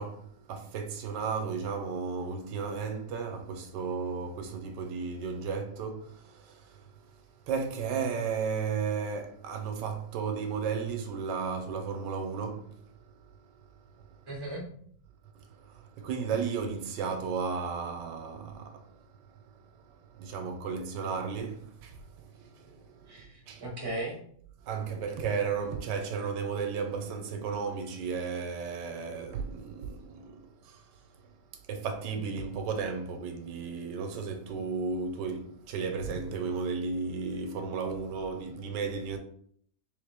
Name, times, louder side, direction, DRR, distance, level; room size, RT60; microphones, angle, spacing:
voice 1, 0.0-6.9 7.5-12.9 14.0-14.1 15.6-19.0 19.3-23.6 24.6-30.9 31.7-39.2, right 5 dB, 85° right, 1.3 m, -34 dB
voice 2, 14.3-14.6 23.1-24.2, right 1 dB, 20° right, 0.8 m, -37 dB
3.5 x 3.5 x 3.4 m
omnidirectional pair, 1.9 m